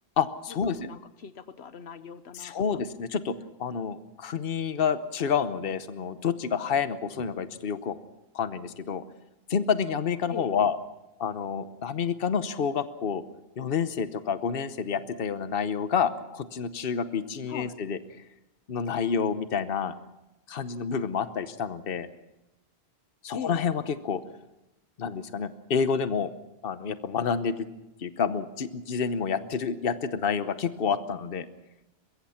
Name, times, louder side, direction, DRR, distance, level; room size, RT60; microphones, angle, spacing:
voice 1, 0.2-0.8 2.3-8.0 8.3-9.0 9.5-10.8 11.2-13.2 13.6-18.0 18.7-19.9 20.5-22.1 23.2-24.2 25.0-26.3 26.6-27.7 28.0-31.5, left 6 dB, 65° left, 12 dB, 1.1 m, -29 dB
voice 2, 0.7-2.8 10.3-10.5 17.5-17.8 23.3-23.6, left 6 dB, 85° left, 12 dB, 1.2 m, -40 dB
23.5 x 21.5 x 5.8 m, 0.94 s
omnidirectional pair, 1.1 m